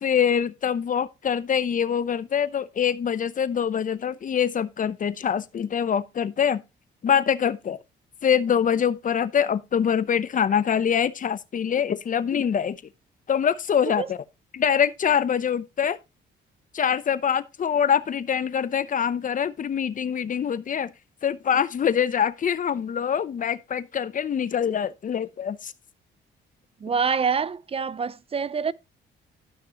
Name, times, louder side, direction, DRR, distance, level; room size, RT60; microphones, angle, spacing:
voice 1, 0.0-6.6 7.0-7.8 8.2-12.8 13.3-14.2 14.5-16.0 16.7-20.9 21.2-25.7, left 8 dB, 40° left, 0.7 m, -24 dB
voice 2, 26.8-28.7, right 6 dB, 30° right, 0.4 m, -26 dB
13.0 x 5.9 x 2.9 m
cardioid pair, 90°, 20 cm